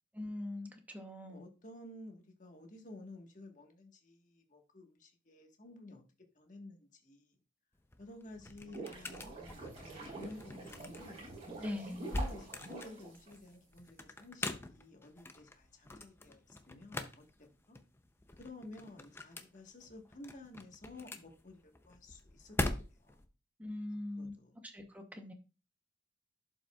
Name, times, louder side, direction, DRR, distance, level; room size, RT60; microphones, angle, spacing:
voice 1, 0.1-1.4 11.6-12.1 23.6-24.3 24.6-25.3, left 1 dB, 10° right, 0.8 m, -42 dB
voice 2, 1.2-6.0 6.3-7.3 8.0-11.2 12.1-17.3 17.7-17.8 18.4-22.6 22.9-23.1 24.1-24.5, left 2 dB, 45° left, 1.4 m, -53 dB
sound 1, 7.7-23.3, left 2 dB, 15° left, 0.5 m, -43 dB
sound 2, 8.4-13.8, right 2 dB, 35° right, 3.8 m, -47 dB
11.5 x 5.3 x 2.3 m
head